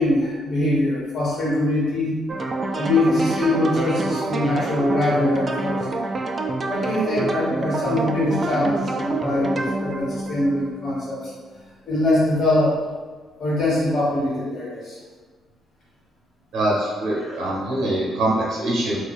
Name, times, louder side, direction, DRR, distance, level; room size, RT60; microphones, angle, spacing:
voice 1, 0.0-2.2 2.7-5.8 6.7-11.2 11.9-12.7 13.4-15.0 17.2-17.4, left 1 dB, 50° left, -6 dB, 1.3 m, -22 dB
sound 1, 2.3-11.3, right 2 dB, 35° right, 0.3 m, -27 dB
voice 2, 16.5-19.0, right 1 dB, 75° right, -5 dB, 0.7 m, -23 dB
2.5 x 2.2 x 3.9 m, 1.4 s
cardioid pair, 90°, 0 cm